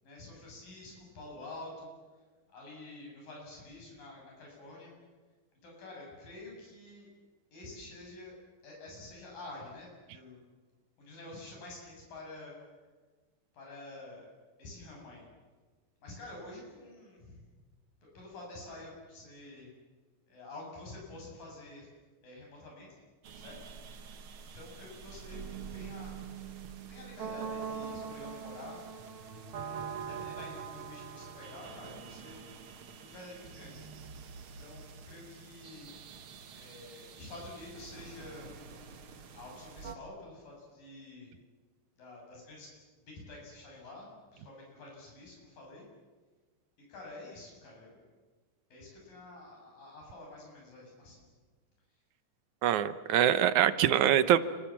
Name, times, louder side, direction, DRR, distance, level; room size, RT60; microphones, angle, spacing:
voice 1, 0.0-1.9 2.5-4.9 5.6-7.1 7.5-8.3 8.6-10.4 11.0-12.5 13.5-14.3 14.6-15.2 16.0-17.5 18.1-19.7 20.3-21.9 22.2-23.0 23.3-23.6 24.5-25.4 25.7-26.2 26.9-28.8 29.5-32.4 33.0-33.9 34.6-35.9 36.5-38.5 39.3-41.3 42.0-42.7 43.0-45.9 46.9-48.0 48.7-51.2, left 2 dB, 85° left, -2 dB, 9.2 m, -48 dB
sound 1, 23.2-40.0, right 6 dB, 50° right, 2.0 m, -44 dB
voice 2, 52.6-54.4, right 11 dB, 70° right, 14 dB, 2.2 m, -24 dB
30.0 x 25.5 x 7.4 m, 1.4 s
omnidirectional pair, 3.8 m